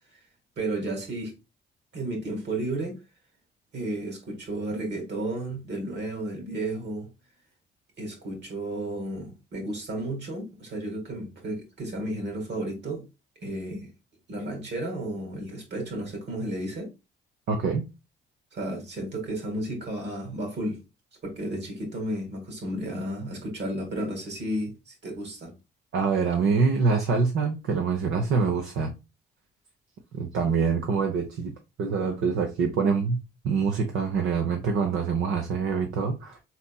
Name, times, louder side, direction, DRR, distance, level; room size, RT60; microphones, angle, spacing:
voice 1, 0.6-1.3 1.9-3.0 3.7-7.1 8.0-13.0 13.4-13.9 14.3-16.9 18.5-20.8 21.2-24.7 25.0-25.5, right 1 dB, 60° right, 2.5 m, -33 dB
voice 2, 17.5-17.8 25.9-28.9 30.1-31.5 31.8-36.4, right 5 dB, 80° right, 0.9 m, -25 dB
4.2 x 4.2 x 2.3 m
cardioid pair, 90°, 20 cm